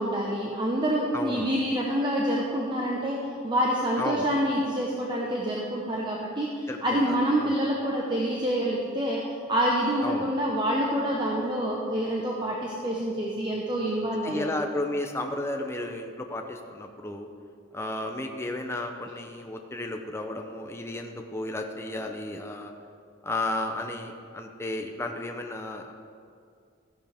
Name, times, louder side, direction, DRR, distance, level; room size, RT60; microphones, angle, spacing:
voice 1, 0.0-14.5, equal, 25° right, -3 dB, 1.0 m, -27 dB
voice 2, 1.1-1.5 4.0-4.2 6.7-7.5 10.0-10.3 14.2-17.3 17.7-22.7 23.2-25.9, left 1 dB, 15° left, 3 dB, 0.6 m, -33 dB
14.0 x 10.5 x 3.5 m, 2.3 s
head